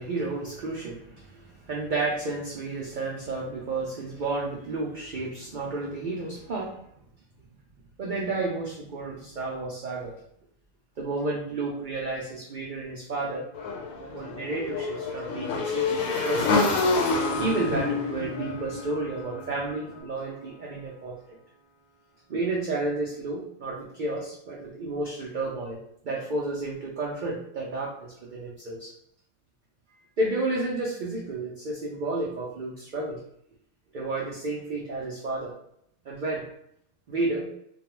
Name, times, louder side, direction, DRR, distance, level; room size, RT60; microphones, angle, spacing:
voice 1, 0.0-6.8 8.0-10.1 11.0-13.5 13.9-16.7 17.4-21.2 22.3-25.8 26.0-28.9 30.2-33.2 33.9-35.5 36.1-36.5 37.1-37.5, right 2 dB, 90° right, -4 dB, 0.4 m, -31 dB
Motorcycle / Engine, 13.5-19.7, left 3 dB, 80° left, 1.0 m, -28 dB
Piano, 17.1-20.7, right 1 dB, 20° left, 0.6 m, -38 dB
2.3 x 2.2 x 3.0 m, 0.72 s
omnidirectional pair, 1.4 m